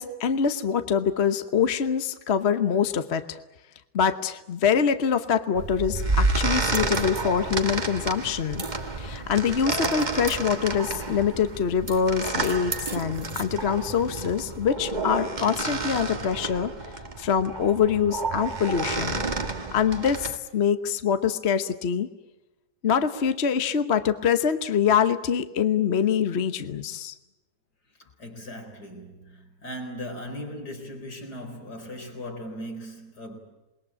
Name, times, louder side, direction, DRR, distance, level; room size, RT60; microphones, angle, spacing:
voice 1, 0.0-3.4 3.9-8.6 9.0-16.7 17.2-19.2 19.7-22.1 22.8-27.1, left 7 dB, 45° left, 1.2 m, -24 dB
sound 1, 5.5-20.4, right 3 dB, 25° right, 1.5 m, -30 dB
voice 2, 28.0-33.4, equal, 65° left, 5.0 m, -38 dB
28.0 x 21.0 x 8.7 m
omnidirectional pair, 1.8 m